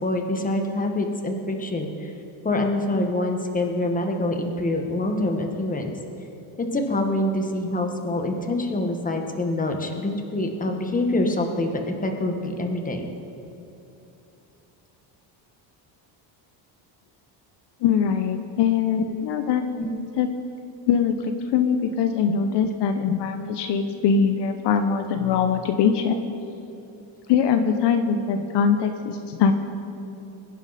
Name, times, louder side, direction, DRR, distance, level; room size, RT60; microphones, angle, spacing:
voice 1, 0.0-2.1 2.4-5.9 6.6-13.1 19.0-19.1 19.8-20.0, left 1 dB, 15° left, 4 dB, 1.5 m, -25 dB
voice 2, 17.8-19.6 20.2-20.3 20.9-26.2 27.3-29.5, left 7 dB, 60° left, 7 dB, 1.0 m, -22 dB
23.5 x 10.5 x 4.2 m, 2.9 s
cardioid pair, 125°, 47 cm